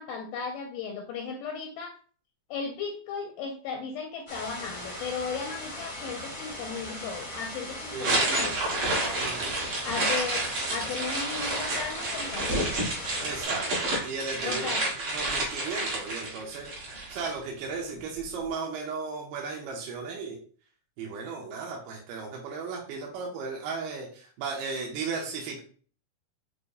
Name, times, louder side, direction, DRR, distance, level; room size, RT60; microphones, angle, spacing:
voice 1, 0.0-2.0 2.5-8.6 9.8-12.7 14.4-14.9 18.3-18.4, left 5 dB, 80° left, 2 dB, 1.9 m, -36 dB
sound 1, 4.3-13.4, left 1 dB, 35° left, 0.7 m, -39 dB
voice 2, 7.9-8.4 9.2-9.6 13.2-20.4 21.0-25.6, right 4 dB, 80° right, -1 dB, 2.3 m, -36 dB
sound 2, 8.0-17.3, right 2 dB, 50° right, 1.8 m, -30 dB
6.5 x 2.5 x 2.6 m, 0.43 s
omnidirectional pair, 4.0 m